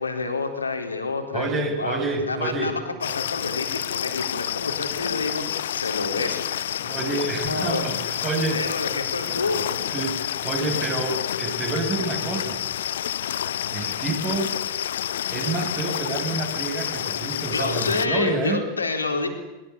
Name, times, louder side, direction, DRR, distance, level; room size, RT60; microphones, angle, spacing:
voice 1, 0.0-5.4 5.7-6.4 7.4-7.9 8.5-10.0 17.5-19.3, left 3 dB, 75° left, 5 dB, 4.3 m, -28 dB
voice 2, 1.3-2.7 6.8-8.7 9.9-12.6 13.7-14.5 15.3-18.6, right 3 dB, 30° right, 2 dB, 7.5 m, -28 dB
sound 1, 3.0-18.1, left 10 dB, 60° left, 0.8 m, -29 dB
23.0 x 22.0 x 8.7 m, 1.0 s
figure-of-eight pair, 90°, 0 cm